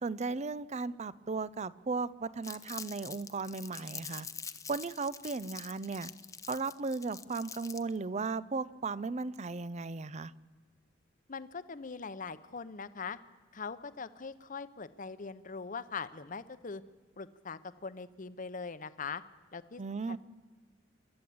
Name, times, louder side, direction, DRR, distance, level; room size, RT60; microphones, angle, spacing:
voice 1, 0.0-4.3 4.7-6.1 6.5-10.3 19.8-20.2, right 4 dB, 35° right, 19 dB, 0.5 m, -36 dB
Crumpling crinkling, 2.4-8.0, left 6 dB, 15° left, 0.7 m, -45 dB
voice 2, 11.3-13.2 13.5-16.8 17.2-19.2 19.5-20.2, left 5 dB, 45° left, 13 dB, 0.9 m, -41 dB
28.0 x 12.5 x 8.6 m, 1.4 s
head